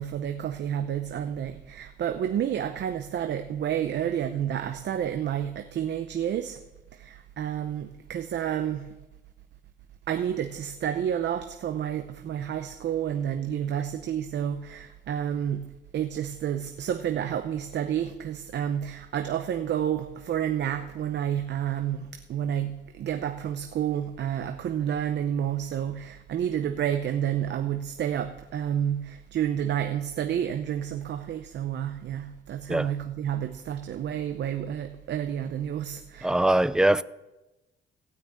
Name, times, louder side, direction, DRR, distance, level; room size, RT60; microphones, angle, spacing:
voice 1, 0.0-6.6 6.9-8.9 10.1-36.5, right 9 dB, 60° right, 0.8 m, -30 dB
voice 2, 36.2-37.0, right 1 dB, 5° right, 0.4 m, -22 dB
16.0 x 6.0 x 8.6 m
cardioid pair, 90°, 20 cm